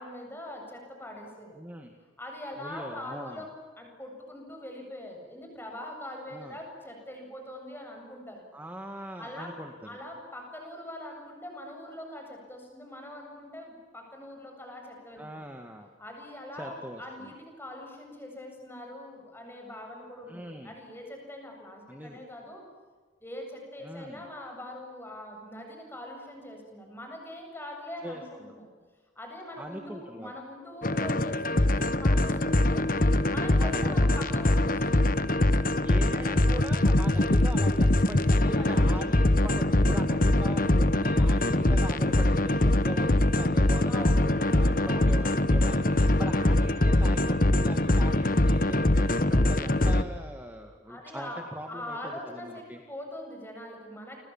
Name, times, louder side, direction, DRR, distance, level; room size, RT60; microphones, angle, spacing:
voice 1, 0.0-1.6 2.2-3.5 3.8-8.4 9.2-9.6 9.9-15.5 16.0-22.6 23.2-28.7 29.2-32.9 33.3-35.1 38.3-38.9 43.9-44.3 44.8-45.2 50.9-51.4 51.7-54.2, left 1 dB, 10° left, 2 dB, 7.9 m, -42 dB
voice 2, 1.6-1.9 2.6-3.4 6.3-6.6 8.5-10.0 15.2-15.9 16.5-17.3 20.3-20.7 21.9-22.2 23.8-24.3 28.0-28.5 29.6-30.3 33.5-34.3 35.7-52.8, equal, 10° right, 4 dB, 1.9 m, -41 dB
sound 1, 30.8-50.0, left 1 dB, 45° left, 1.2 m, -23 dB
30.0 x 27.0 x 7.4 m, 1.5 s
head